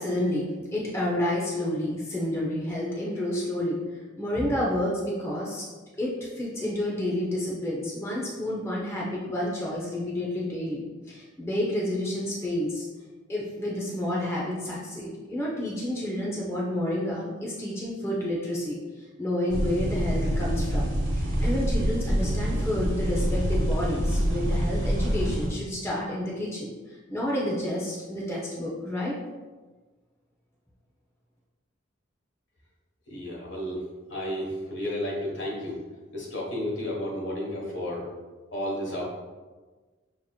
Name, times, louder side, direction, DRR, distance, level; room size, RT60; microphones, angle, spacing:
voice 1, 0.0-5.6 6.0-12.9 13.3-18.8 19.2-29.2, left 1 dB, 15° left, -5 dB, 0.6 m, -30 dB
sound 1, 19.5-25.5, equal, 80° right, 1.4 m, -26 dB
voice 2, 33.1-33.8 34.1-35.8 36.1-38.0 38.5-39.0, left 1 dB, 70° left, -3 dB, 1.3 m, -32 dB
6.4 x 2.9 x 2.3 m, 1.3 s
head